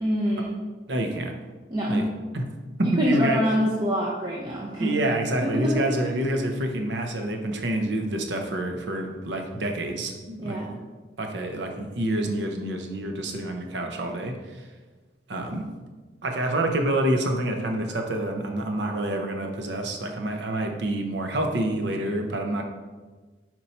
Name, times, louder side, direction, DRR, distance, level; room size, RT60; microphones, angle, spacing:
voice 1, 0.0-0.6 1.7-2.1 2.8-4.9 5.4-5.8 10.4-10.8, equal, 25° right, -4 dB, 0.7 m, -25 dB
voice 2, 0.9-1.4 1.9-2.0 2.3-2.4 2.8-3.4 4.8-10.6 11.2-14.7 15.3-15.7 16.2-22.6, right 1 dB, 70° right, 3 dB, 0.7 m, -27 dB
5.4 x 4.4 x 4.2 m, 1.3 s
head